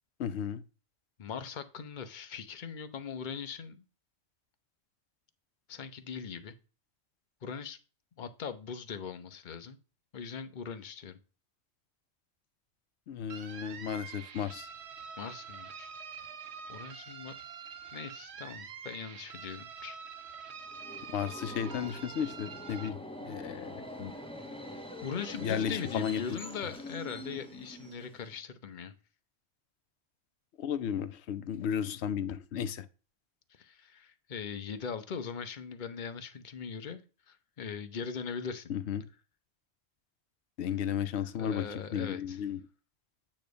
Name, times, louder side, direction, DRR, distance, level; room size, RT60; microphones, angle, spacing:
voice 1, 0.2-0.6 13.1-14.7 21.1-23.0 23.2-24.1 25.4-26.2 30.6-32.9 38.7-39.0 40.6-42.6, left 8 dB, 75° left, 0.9 m, -34 dB
voice 2, 1.2-3.8 5.7-6.5 7.4-7.8 8.2-9.8 10.1-11.2 15.2-15.9 16.7-17.3 17.9-20.0 25.0-28.9 33.5-38.7 41.3-42.4, left 6 dB, 50° left, 0.9 m, -40 dB
sound 1, 13.3-22.9, right 6 dB, 75° right, 1.1 m, -46 dB
Subway metro underground, 20.6-28.4, equal, 5° left, 1.0 m, -45 dB
8.9 x 3.2 x 5.1 m
omnidirectional pair, 1.1 m